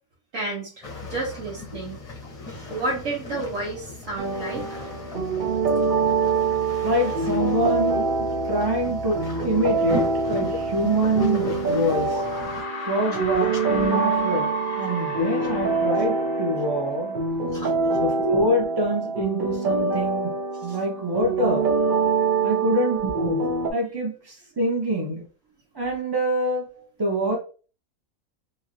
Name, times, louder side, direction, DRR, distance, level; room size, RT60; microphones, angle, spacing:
voice 1, 0.3-0.8 1.1-2.0 2.5-4.8 12.7-13.2 17.5-18.0 20.7-20.8, right 2 dB, 60° right, 1.1 m, -32 dB
sound 1, 0.8-12.6, left 3 dB, 30° left, 0.8 m, -36 dB
sound 2, 4.2-23.7, right 4 dB, 85° right, 0.4 m, -25 dB
voice 2, 6.8-8.1 8.5-12.2 12.9-17.2 17.9-21.7 22.4-23.5 23.7-25.3 25.7-27.4, right 1 dB, 25° right, 0.5 m, -25 dB
sound 3, 11.3-11.4 12.1-17.3, left 3 dB, 65° left, 0.5 m, -35 dB
3.0 x 2.7 x 2.6 m
omnidirectional pair, 1.6 m